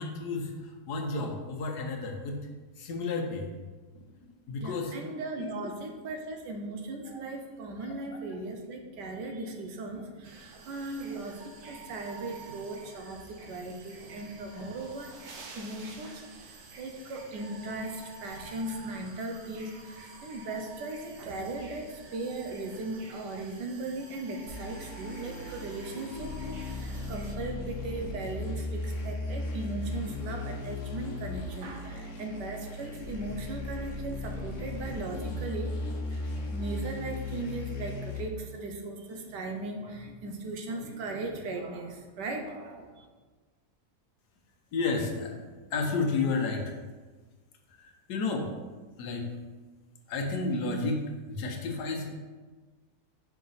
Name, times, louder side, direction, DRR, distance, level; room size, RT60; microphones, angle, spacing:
voice 1, 0.0-2.5 2.8-3.5 3.9-4.0 4.5-5.0 5.4-5.5 7.8-8.0 44.7-45.4 45.7-46.7 47.8-48.5 49.0-49.3 50.1-52.1, left 3 dB, 75° left, 1 dB, 1.4 m, -31 dB
voice 2, 4.6-15.2 15.5-35.8 36.1-43.1, right 2 dB, 90° right, 3 dB, 1.5 m, -38 dB
sound 1, 10.2-27.4, right 3 dB, 65° right, 1.3 m, -49 dB
sound 2, 24.5-38.2, left 2 dB, 55° left, 1.1 m, -37 dB
5.7 x 4.8 x 4.0 m, 1.3 s
omnidirectional pair, 1.8 m